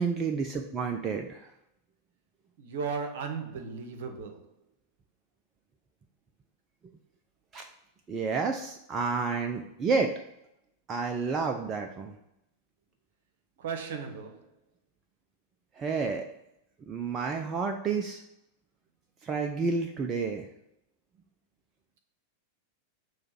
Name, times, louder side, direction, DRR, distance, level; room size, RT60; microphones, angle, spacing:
voice 1, 0.0-1.5 7.5-7.7 8.1-10.1 10.9-12.2 15.8-16.2 16.9-18.2 19.2-20.5, right 4 dB, 25° right, 0.5 m, -30 dB
voice 2, 2.6-4.5 13.6-14.5, right 5 dB, 55° right, 1.0 m, -36 dB
6.7 x 3.2 x 5.7 m
figure-of-eight pair, 90°, 0 cm